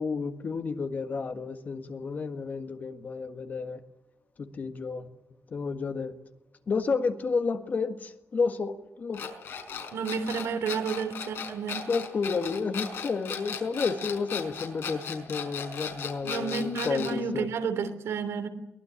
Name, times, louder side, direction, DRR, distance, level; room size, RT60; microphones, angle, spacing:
voice 1, 0.0-3.8 4.4-5.1 5.5-6.1 6.7-9.3 11.9-17.5, left 4 dB, 40° left, 1.6 m, -31 dB
sound 1, 9.1-17.2, left 6 dB, 65° left, 5.0 m, -36 dB
voice 2, 9.9-11.9 16.2-18.5, right 5 dB, 85° right, 3.3 m, -31 dB
23.0 x 19.5 x 9.9 m
wide cardioid pair, 160°, 5 cm